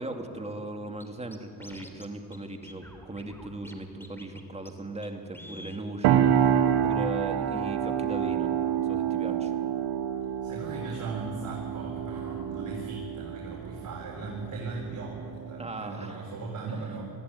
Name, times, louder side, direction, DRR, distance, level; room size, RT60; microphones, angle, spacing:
voice 1, 0.0-8.5 8.8-9.6 15.6-16.2 16.7-17.0, right 2 dB, 15° right, 4 dB, 2.4 m, -38 dB
Scratching (performance technique), 1.0-1.1 1.3-2.1 2.3-2.4 2.6-3.8 4.0-4.4 4.7-4.8 5.0-5.1 5.3-5.8, left 1 dB, 5° left, 2.9 m, -47 dB
sound 1, 6.0-15.8, right 9 dB, 85° right, 1.3 m, -28 dB
voice 2, 10.4-17.0, right 3 dB, 50° right, -2 dB, 4.2 m, -38 dB
20.5 x 14.5 x 9.7 m, 2.7 s
supercardioid pair, 75°, 39 cm